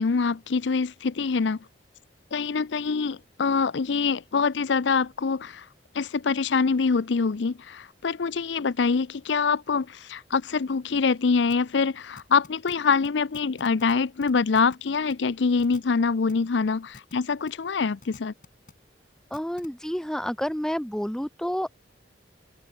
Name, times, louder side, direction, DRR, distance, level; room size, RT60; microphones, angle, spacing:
voice 1, 0.0-1.6 2.3-5.6 5.9-18.3, left 5 dB, 80° left, 0.6 m, -25 dB
sound 1, 11.5-11.6 12.2-12.7 13.0-13.1 13.3-13.9 14.2-14.7 15.1-15.2 15.6-15.8 16.3-16.4 16.9-17.1 17.5-17.6 18.0-18.7 19.3-19.7, left 3 dB, 45° left, 2.7 m, -47 dB
voice 2, 19.3-21.7, equal, 5° left, 0.8 m, -29 dB
head